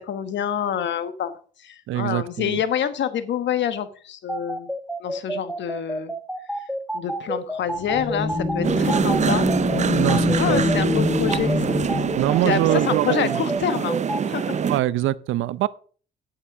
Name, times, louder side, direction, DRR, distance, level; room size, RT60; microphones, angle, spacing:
voice 1, 0.0-1.3 1.6-4.7 5.0-6.1 6.9-9.5 10.4-11.8 12.4-14.0 14.2-14.6, left 8 dB, 65° left, 1.2 m, -27 dB
voice 2, 1.9-2.6 9.9-10.7 12.2-13.4 14.6-15.7, right 14 dB, 80° right, 0.6 m, -23 dB
sound 1, 4.3-14.2, right 1 dB, ahead, 1.6 m, -29 dB
sound 2, 7.7-12.5, left 3 dB, 25° left, 5.7 m, -25 dB
sound 3, 8.6-14.8, right 7 dB, 35° right, 0.6 m, -25 dB
9.9 x 8.6 x 4.9 m
cardioid pair, 90°, 20 cm